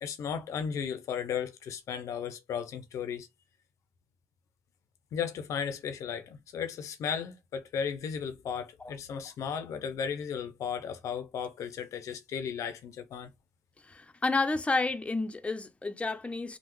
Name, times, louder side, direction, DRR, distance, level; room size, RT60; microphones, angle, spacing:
voice 1, 0.0-3.3 5.1-13.3, left 7 dB, 85° left, 0.4 m, -35 dB
voice 2, 13.8-16.6, left 3 dB, 25° left, 0.5 m, -30 dB
3.3 x 2.0 x 3.0 m
cardioid pair, 60°, 5 cm